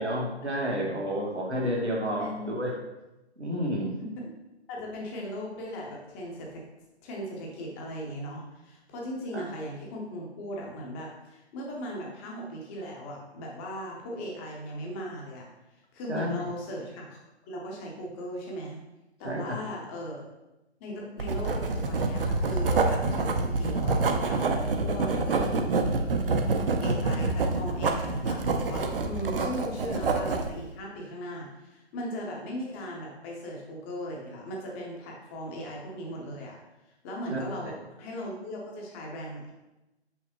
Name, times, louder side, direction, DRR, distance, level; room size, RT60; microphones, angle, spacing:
voice 1, 0.0-2.7 3.4-3.9 9.3-9.4 16.1-16.3 19.2-19.5 37.3-37.4, equal, 85° right, -2 dB, 1.9 m, -30 dB
voice 2, 4.7-6.6 7.0-15.5 15.9-17.2 17.4-18.8 19.2-20.2 20.8-26.2 26.8-36.6 37.0-39.5, equal, 10° left, -1 dB, 0.6 m, -38 dB
Writing, 21.2-30.5, right 3 dB, 55° right, 0.7 m, -27 dB
6.1 x 5.7 x 3.0 m, 0.99 s
figure-of-eight pair, 140°, 33 cm